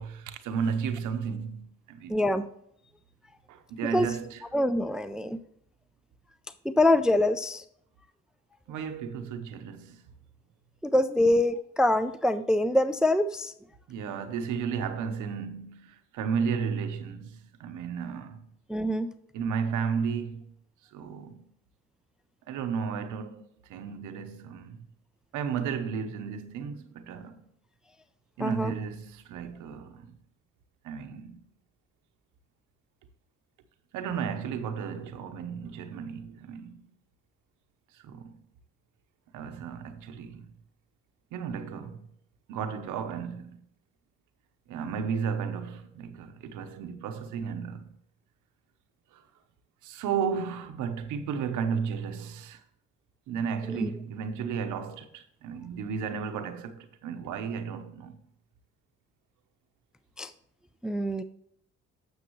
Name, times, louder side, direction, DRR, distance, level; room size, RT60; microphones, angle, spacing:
voice 1, 0.0-2.2 3.5-4.4 8.7-10.0 13.9-18.4 19.3-20.4 20.9-21.5 22.5-23.4 23.7-24.9 25.3-27.4 28.4-30.1 30.8-31.4 33.9-36.9 37.9-38.4 39.3-40.5 41.3-42.0 42.5-43.7 44.7-47.9 49.1-49.2 49.8-52.6 53.3-58.2, right 6 dB, 90° right, 0.9 m, -33 dB
voice 2, 2.1-2.5 3.9-4.1 4.5-5.4 6.7-7.6 10.8-13.5 18.7-19.1 28.4-28.7 53.8-53.9 60.2-60.3 60.8-61.2, left 1 dB, ahead, 0.4 m, -24 dB
9.5 x 7.1 x 3.1 m
cardioid pair, 90°, 30 cm